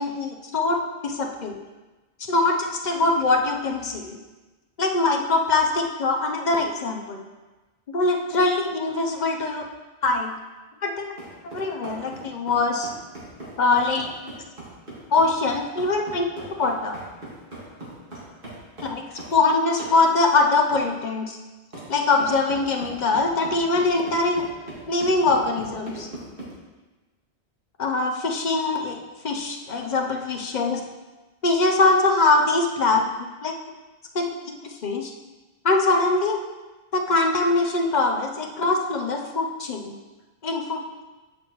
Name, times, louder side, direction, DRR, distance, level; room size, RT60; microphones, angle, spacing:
voice 1, 0.0-1.6 2.3-4.2 4.8-7.2 7.9-9.7 10.0-10.3 10.8-11.0 11.4-12.9 13.6-14.1 15.1-16.3 16.6-17.0 18.8-19.0 19.3-21.4 21.9-24.4 24.9-26.1 27.8-29.0 29.2-30.8 31.4-33.0 33.4-33.5 34.1-34.3 34.6-35.1 35.6-36.4 36.9-40.0 40.4-41.0, left 3 dB, 45° left, 2 dB, 0.8 m, -22 dB
sound 1, 11.2-19.4 19.8-20.0 20.7-20.9 21.7-21.9 22.2-26.5, right 2 dB, 55° right, 2.1 m, -39 dB
8.5 x 6.1 x 3.0 m, 1.2 s
omnidirectional pair, 1.1 m